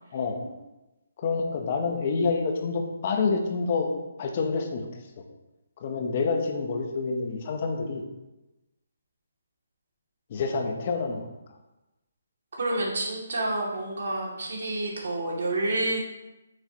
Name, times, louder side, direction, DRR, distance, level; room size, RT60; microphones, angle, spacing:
voice 1, 1.2-3.9 4.2-5.2 5.8-8.0 10.3-11.3, left 4 dB, 35° left, 3 dB, 1.0 m, -28 dB
voice 2, 12.6-16.0, right 2 dB, 70° right, -3 dB, 2.7 m, -29 dB
8.5 x 6.4 x 3.1 m, 1.0 s
hypercardioid pair, 165°, 0 cm